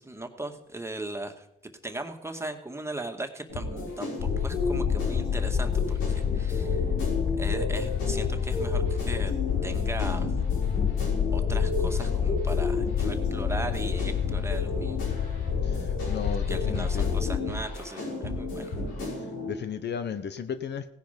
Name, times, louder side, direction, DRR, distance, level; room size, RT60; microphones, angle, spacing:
voice 1, 0.0-1.5 1.8-4.1 4.4-5.7 6.1-6.8 7.4-9.3 9.6-10.3 11.3-15.0 16.5-18.7, right 2 dB, 15° right, 5 dB, 2.1 m, -38 dB
sound 1, 3.5-19.5, left 1 dB, 85° left, 5.9 m, -33 dB
sound 2, 4.2-17.4, left 8 dB, 45° left, 0.6 m, -28 dB
voice 2, 15.6-17.2 19.5-20.9, left 7 dB, 60° left, 11 dB, 1.1 m, -35 dB
17.0 x 10.5 x 5.3 m, 0.83 s
supercardioid pair, 65°, 20 cm